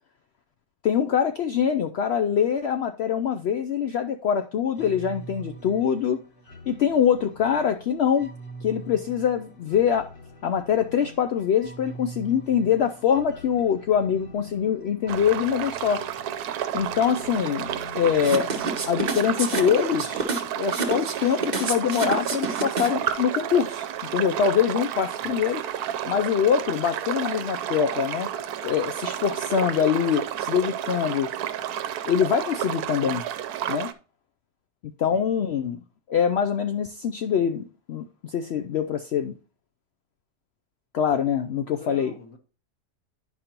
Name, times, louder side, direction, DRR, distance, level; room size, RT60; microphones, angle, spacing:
voice 1, 0.8-6.2 6.7-8.3 8.6-10.1 10.4-16.0 16.7-17.7 17.9-18.5 18.9-23.9 24.1-25.6 26.1-28.3 28.6-31.3 32.1-33.2 33.7-33.9 35.0-35.8 36.1-39.3 40.9-42.1, left 8 dB, 80° left, 0.5 m, -24 dB
sound 1, 4.7-20.2, right 1 dB, 40° left, 1.2 m, -45 dB
sound 2, 15.1-33.9, right 10 dB, 80° right, 1.1 m, -31 dB
sound 3, 18.2-23.1, right 4 dB, 35° right, 0.8 m, -29 dB
voice 2, 41.7-42.4, left 3 dB, 60° left, 1.4 m, -44 dB
10.5 x 5.1 x 2.9 m
omnidirectional pair, 1.7 m